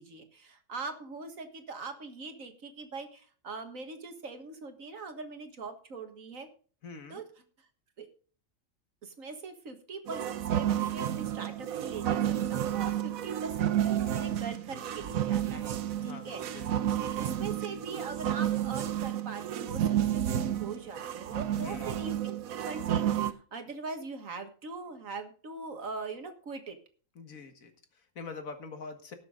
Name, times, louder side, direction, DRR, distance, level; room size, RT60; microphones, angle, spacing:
voice 1, 0.0-6.5 7.1-7.2 8.0-8.1 9.0-16.4 17.0-22.4 22.7-26.8, right 4 dB, 70° right, 7 dB, 2.0 m, -41 dB
voice 2, 6.8-7.2 16.0-16.7 21.5-22.0 27.2-29.1, left 4 dB, 80° left, 7 dB, 2.0 m, -44 dB
sound 1, 10.1-23.3, right 11 dB, 90° right, 1.3 m, -31 dB
18.5 x 6.9 x 3.8 m, 0.41 s
omnidirectional pair, 1.4 m